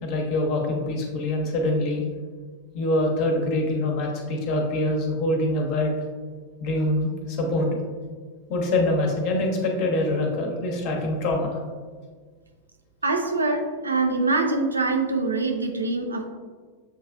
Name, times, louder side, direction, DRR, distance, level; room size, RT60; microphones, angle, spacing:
voice 1, 0.0-2.0 2.7-5.9 6.6-7.8 8.5-11.6, left 1 dB, 45° left, 2 dB, 0.9 m, -24 dB
voice 2, 13.0-16.3, right 3 dB, 80° right, 4 dB, 0.4 m, -24 dB
7.1 x 3.1 x 2.4 m, 1.5 s
figure-of-eight pair, 90°, 0 cm